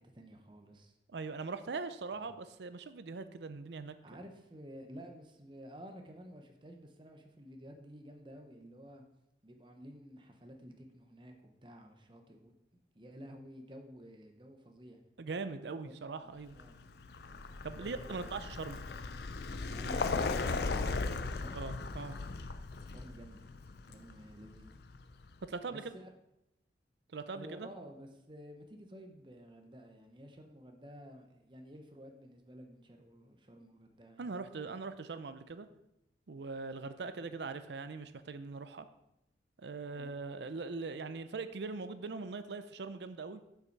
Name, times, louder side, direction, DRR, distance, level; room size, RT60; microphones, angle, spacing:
voice 1, 0.0-0.9 2.1-2.3 4.0-9.0 9.4-12.5 12.9-15.0 16.2-16.8 17.8-18.4 19.6-21.7 22.9-23.5 23.8-24.8 25.7-26.1 27.3-34.7 36.8-36.9 39.9-40.1, equal, 25° right, 4 dB, 0.9 m, -52 dB
voice 2, 1.1-4.0 15.2-16.6 17.6-18.8 21.5-22.2 25.5-26.0 27.1-27.7 34.2-35.7 36.3-38.9 39.6-43.4, right 4 dB, 75° right, 11 dB, 0.5 m, -41 dB
Vehicle, 16.5-25.3, left 3 dB, 65° left, 0.5 m, -38 dB
6.8 x 5.8 x 4.6 m, 0.84 s
head